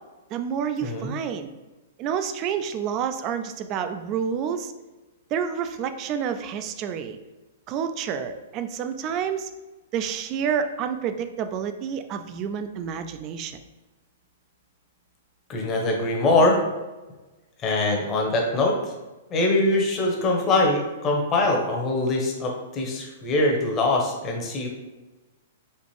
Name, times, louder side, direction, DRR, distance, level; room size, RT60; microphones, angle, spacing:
voice 1, 0.3-1.5 2.0-4.7 5.3-7.2 7.7-9.5 9.9-13.6, right 7 dB, 35° right, 8 dB, 0.3 m, -29 dB
voice 2, 0.8-1.1 15.5-16.6 17.6-18.8 19.3-24.7, left 2 dB, 30° left, 0 dB, 0.9 m, -23 dB
4.2 x 2.4 x 3.2 m, 1.2 s
hypercardioid pair, 125°, 0 cm